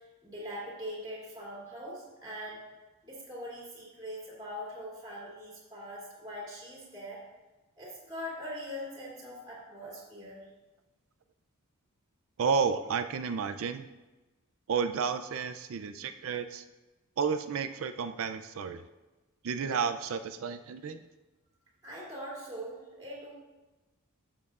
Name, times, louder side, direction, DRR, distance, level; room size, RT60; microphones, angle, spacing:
voice 1, 0.0-2.6 3.0-7.2 7.8-10.5 21.8-23.3, equal, 15° right, -5 dB, 2.6 m, -42 dB
voice 2, 12.4-13.8 14.7-16.6 17.2-18.8 19.4-21.0, right 6 dB, 65° right, 9 dB, 0.4 m, -31 dB
12.0 x 7.4 x 2.4 m, 1.2 s
head